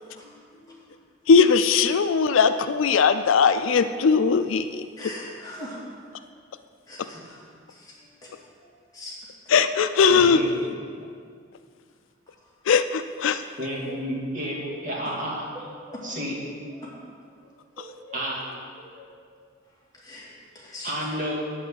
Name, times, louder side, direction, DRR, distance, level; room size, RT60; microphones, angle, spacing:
voice 1, 0.2-0.7 7.1-7.2 8.6-8.7 10.0-10.5 11.0-11.1 13.6-15.4 16.0-16.4 18.1-18.4 20.8-21.4, equal, 40° right, -3 dB, 2.1 m, -31 dB
voice 2, 1.3-4.7 9.5-10.4 12.7-13.4, left 5 dB, 75° left, 11 dB, 0.4 m, -19 dB
voice 3, 5.0-5.8 6.9-7.4 7.7-8.0 8.2-8.3 8.9-9.2 13.6-14.1 14.7-15.2 15.9-16.9 17.4-18.5 18.9-19.1 19.9-21.0, left 1 dB, 20° left, -6 dB, 2.6 m, -42 dB
9.1 x 5.9 x 7.7 m, 2.1 s
head